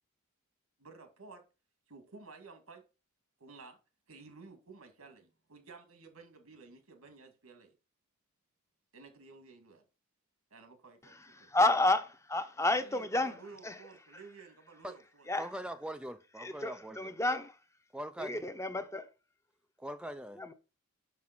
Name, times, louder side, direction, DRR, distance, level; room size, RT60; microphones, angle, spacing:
voice 1, 0.8-1.4 1.9-2.8 3.4-3.8 4.1-7.7 8.9-9.8 10.5-11.5 12.6-15.3, right 4 dB, 85° right, 2.2 m, -53 dB
voice 2, 11.4-13.4 13.6-13.8 15.3-15.5 16.4-17.5 18.2-19.1 20.4-20.5, left 2 dB, 15° left, 0.8 m, -30 dB
voice 3, 15.3-17.1 17.9-18.4 19.8-20.4, right 1 dB, 5° right, 0.4 m, -42 dB
6.1 x 5.6 x 6.0 m
head